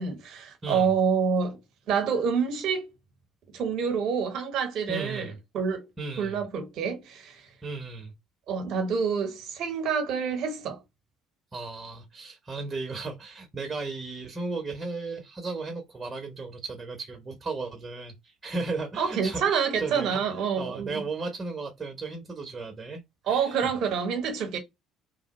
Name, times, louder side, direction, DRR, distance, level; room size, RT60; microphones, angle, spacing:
voice 1, 0.0-1.6 1.9-2.9 3.5-5.8 6.2-7.4 8.5-10.8 19.0-21.0 23.3-24.6, right 6 dB, 60° right, 0.9 m, -27 dB
voice 2, 0.6-0.9 4.9-5.4 6.0-6.4 7.6-8.1 11.5-23.8, right 3 dB, 30° right, 0.9 m, -35 dB
2.9 x 2.1 x 3.0 m
hypercardioid pair, 55°, 0 cm